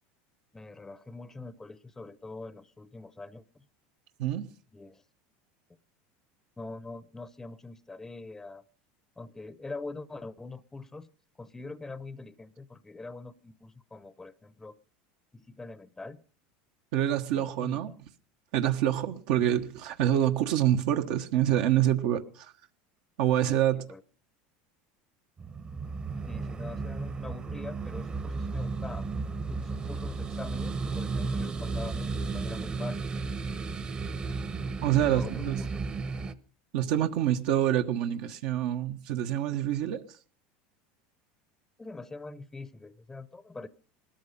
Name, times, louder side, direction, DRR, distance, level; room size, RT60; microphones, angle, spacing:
voice 1, 0.5-3.6 4.7-5.0 6.6-8.6 9.2-11.1 11.4-14.7 15.3-16.2 17.3-18.0 23.9-24.0 26.3-29.1 29.5-33.0 35.0-35.8 41.8-43.7, left 3 dB, 10° left, 0.7 m, -43 dB
voice 2, 16.9-17.9 18.5-22.5 23.2-23.9 34.8-35.7 36.7-40.2, right 11 dB, 70° right, 1.2 m, -26 dB
sound 1, 25.4-36.3, right 4 dB, 25° right, 1.0 m, -34 dB
19.5 x 13.0 x 5.5 m
supercardioid pair, 130°, 4 cm